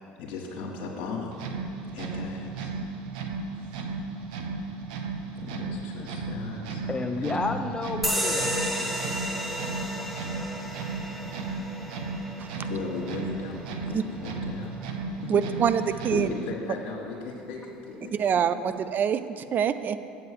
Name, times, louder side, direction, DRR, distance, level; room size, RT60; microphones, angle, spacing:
voice 1, 0.2-1.4 1.9-2.7 3.6-3.8 5.3-7.6 11.2-11.4 12.6-14.7 15.2-15.6 16.1-18.1, left 4 dB, 65° left, -4 dB, 1.4 m, -37 dB
sound 1, 1.3-16.5, right 3 dB, 75° right, 0.9 m, -35 dB
voice 2, 6.9-8.9, left 3 dB, 20° left, 7 dB, 0.6 m, -31 dB
sound 2, 8.0-15.1, equal, 5° right, 1.0 m, -33 dB
voice 3, 15.3-16.3 18.1-20.1, right 8 dB, 40° right, 12 dB, 0.5 m, -25 dB
8.0 x 6.9 x 6.6 m, 2.5 s
hypercardioid pair, 70°, 5 cm